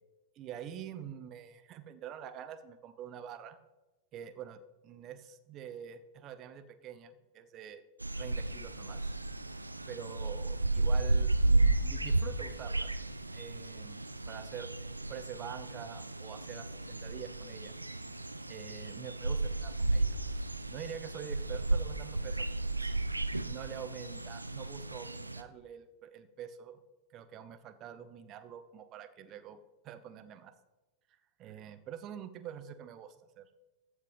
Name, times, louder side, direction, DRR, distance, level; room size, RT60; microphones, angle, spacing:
voice 1, 0.3-3.6 4.1-7.8 8.2-9.1 9.9-12.9 13.3-14.0 14.3-14.7 15.1-17.8 18.5-20.1 20.7-22.4 22.8-22.9 23.4-26.8 27.1-29.6 29.8-30.5 31.4-33.5, right 9 dB, 35° right, 12 dB, 1.0 m, -46 dB
sound 1, 8.0-25.4, right 2 dB, 85° right, 0.6 m, -33 dB
14.5 x 6.7 x 5.1 m, 1.1 s
figure-of-eight pair, 90°, 0 cm